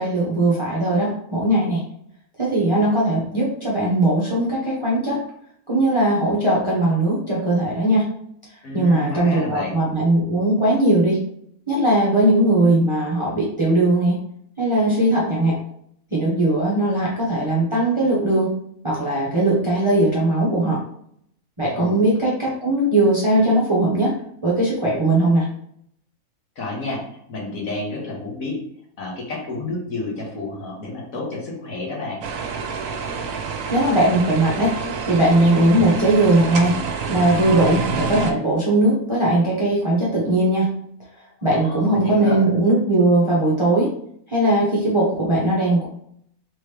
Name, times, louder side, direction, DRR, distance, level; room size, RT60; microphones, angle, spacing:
voice 1, 0.0-1.8 2.4-5.2 5.7-8.1 8.7-11.2 11.7-14.1 14.6-15.6 16.1-18.5 18.8-20.8 21.6-24.1 24.4-25.4 33.7-34.7 35.1-36.8 37.1-40.7 41.4-43.9 44.3-45.9, right 1 dB, 25° right, -6 dB, 0.7 m, -19 dB
voice 2, 8.6-9.8 21.7-22.0 26.6-28.6 29.0-32.3 41.4-42.4, left 2 dB, 65° left, -3 dB, 1.5 m, -30 dB
sound 1, 32.2-38.3, right 5 dB, 70° right, 0.9 m, -28 dB
3.5 x 3.0 x 3.3 m, 0.68 s
omnidirectional pair, 1.5 m